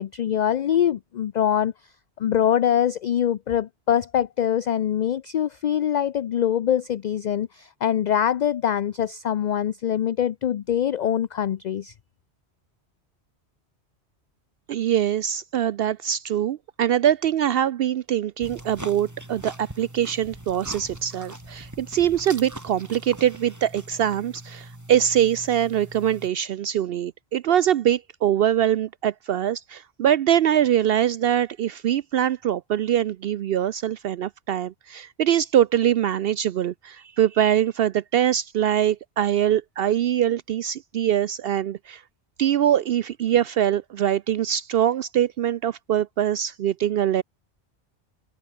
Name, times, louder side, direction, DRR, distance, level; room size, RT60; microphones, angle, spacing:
voice 1, 0.0-1.7 2.2-11.9, left 9 dB, 55° left, 0.5 m, -23 dB
voice 2, 14.7-42.0 42.4-47.2, right 10 dB, 65° right, 0.7 m, -23 dB
sound 1, 18.4-26.3, right 1 dB, 15° right, 2.6 m, -41 dB
omnidirectional pair, 1.1 m